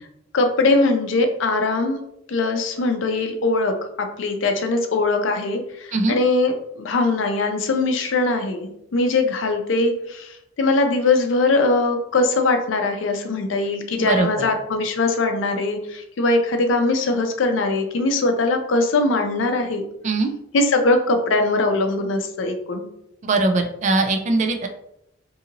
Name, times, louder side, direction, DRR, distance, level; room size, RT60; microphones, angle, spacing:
voice 1, 0.3-2.0 2.3-19.8 20.5-22.9, left 2 dB, 80° left, 5 dB, 0.4 m, -21 dB
voice 2, 14.1-14.5 20.0-20.3 23.2-24.7, right 2 dB, 40° right, 5 dB, 0.3 m, -21 dB
2.7 x 2.5 x 2.7 m, 0.79 s
head